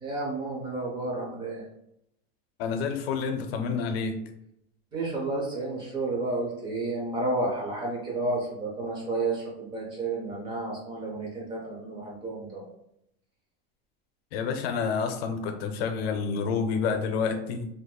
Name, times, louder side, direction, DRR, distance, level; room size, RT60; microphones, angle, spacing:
voice 1, 0.0-1.6 4.9-12.6, right 2 dB, 15° right, -2 dB, 0.5 m, -31 dB
voice 2, 2.6-4.2 14.3-17.7, left 5 dB, 80° left, 6 dB, 0.6 m, -29 dB
3.6 x 2.7 x 2.2 m, 0.79 s
supercardioid pair, 170°, 30 cm